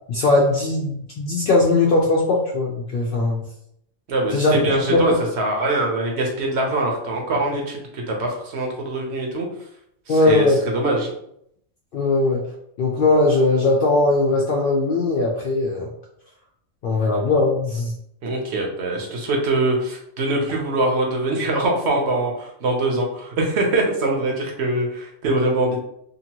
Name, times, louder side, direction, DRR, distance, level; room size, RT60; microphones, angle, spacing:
voice 1, 0.1-3.4 4.3-4.5 4.9-5.0 10.1-10.6 11.9-12.4 12.8-15.9 16.8-17.9, left 2 dB, 60° left, -2 dB, 0.6 m, -19 dB
voice 2, 4.1-9.5 10.1-11.1 18.2-25.8, right 2 dB, 65° right, 0 dB, 1.0 m, -23 dB
2.9 x 2.5 x 2.8 m, 0.73 s
omnidirectional pair, 1.3 m